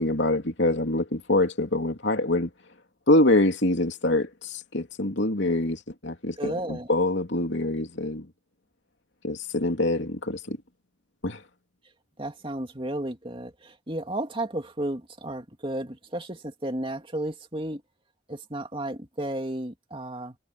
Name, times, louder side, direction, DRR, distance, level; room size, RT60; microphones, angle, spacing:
voice 1, 0.0-2.5 3.1-8.3 9.2-10.6 11.2-11.4, left 1 dB, 65° left, 3.1 m, -25 dB
voice 2, 6.4-6.9 12.2-17.8 18.3-20.4, right 1 dB, 25° right, 2.6 m, -33 dB
head